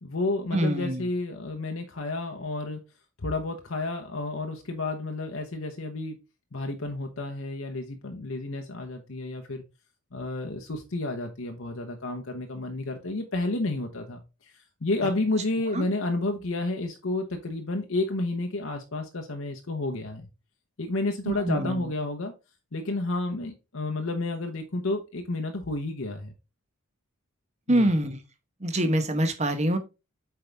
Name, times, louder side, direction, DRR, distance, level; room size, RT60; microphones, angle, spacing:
voice 1, 0.0-2.8 3.2-6.2 6.5-9.6 10.1-20.3 20.8-22.3 22.7-26.3 27.7-27.9, left 2 dB, 65° left, 4 dB, 0.9 m, -31 dB
voice 2, 0.5-1.0 15.7-15.8 21.3-21.9 27.7-28.2 28.6-29.8, right 1 dB, 30° right, 7 dB, 1.0 m, -25 dB
7.9 x 4.7 x 3.4 m, 0.28 s
head